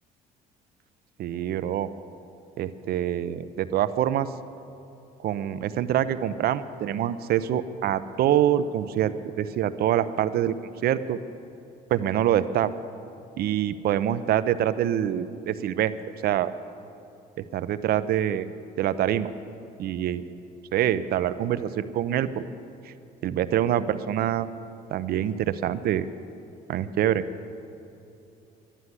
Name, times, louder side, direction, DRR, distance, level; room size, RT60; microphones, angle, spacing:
voice 1, 1.2-1.9 2.6-4.3 5.2-10.5 10.8-11.2 11.9-12.7 13.4-15.9 16.2-16.5 17.5-18.5 18.8-19.3 19.8-20.2 20.7-22.4 22.9-23.0 23.2-24.5 24.9-26.1 26.7-27.2, right 11 dB, 65° right, 13 dB, 0.6 m, -25 dB
11.5 x 11.0 x 9.4 m, 2.8 s
cardioid pair, 110°, 17 cm